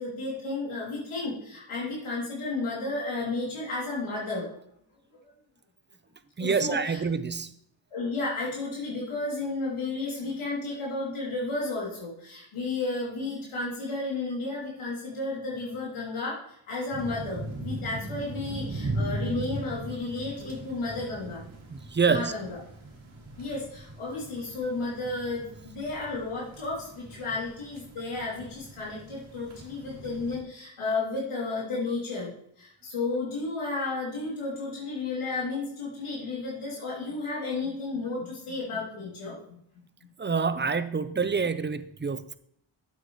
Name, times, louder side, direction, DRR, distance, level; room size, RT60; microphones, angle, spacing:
voice 1, 0.0-4.5 5.1-5.2 6.4-7.0 7.9-21.4 22.1-22.6 23.4-39.6, left 3 dB, 75° left, -6 dB, 2.9 m, -33 dB
voice 2, 6.4-7.5 21.7-22.3 40.2-42.4, right 5 dB, 20° right, 12 dB, 0.6 m, -27 dB
sound 1, 16.9-30.4, right 2 dB, 65° right, 2.8 m, -39 dB
8.2 x 7.9 x 3.1 m, 0.69 s
cardioid pair, 65°, 50 cm